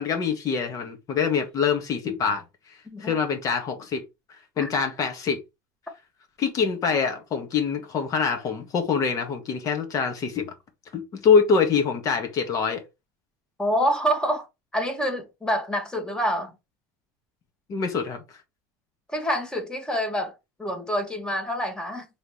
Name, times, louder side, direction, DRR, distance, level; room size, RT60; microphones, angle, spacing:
voice 1, 0.0-2.4 3.0-4.0 4.3-5.4 6.4-10.5 10.9-12.8 17.7-18.2, left 6 dB, 45° left, 1.6 m, -24 dB
voice 2, 2.9-3.2 4.6-4.7 13.6-14.5 14.7-16.5 19.1-20.3 20.6-22.1, equal, 10° left, 1.7 m, -26 dB
5.0 x 3.5 x 3.1 m
supercardioid pair, 100°, 8 cm